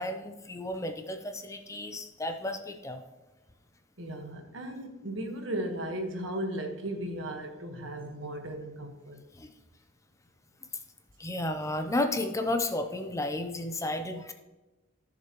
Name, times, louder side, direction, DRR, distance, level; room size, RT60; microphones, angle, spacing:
voice 1, 0.0-3.0 9.4-9.5 11.2-14.3, left 1 dB, 15° left, 0.6 m, -32 dB
voice 2, 4.0-9.2, right 1 dB, 70° right, 1.4 m, -36 dB
14.5 x 6.7 x 3.0 m
head